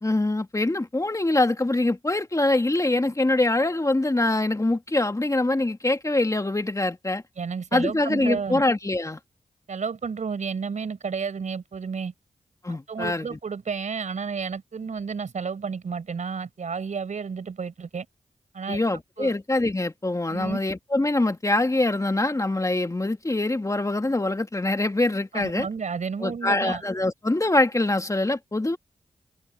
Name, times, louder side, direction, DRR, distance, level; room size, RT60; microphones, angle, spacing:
voice 1, 0.0-7.2 7.7-9.2 12.6-13.4 18.7-25.7 26.2-28.8, left 2 dB, 25° left, 1.9 m, -24 dB
voice 2, 7.4-8.6 9.7-12.1 12.7-18.1 18.5-18.8 19.2-19.3 20.3-20.6 25.3-26.8, right 5 dB, 75° right, 5.8 m, -31 dB
cardioid pair, 50°, 13 cm